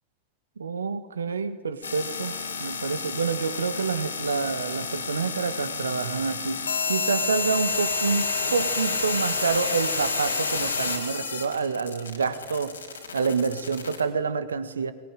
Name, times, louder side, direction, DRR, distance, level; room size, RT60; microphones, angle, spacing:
voice 1, 0.6-2.3 2.6-6.6 6.9-12.8 13.1-14.9, right 5 dB, 70° right, 11 dB, 1.6 m, -28 dB
sound 1, 1.8-14.0, left 5 dB, 75° left, 3.5 m, -30 dB
23.5 x 20.0 x 10.0 m, 1.5 s
figure-of-eight pair, 90°, 0 cm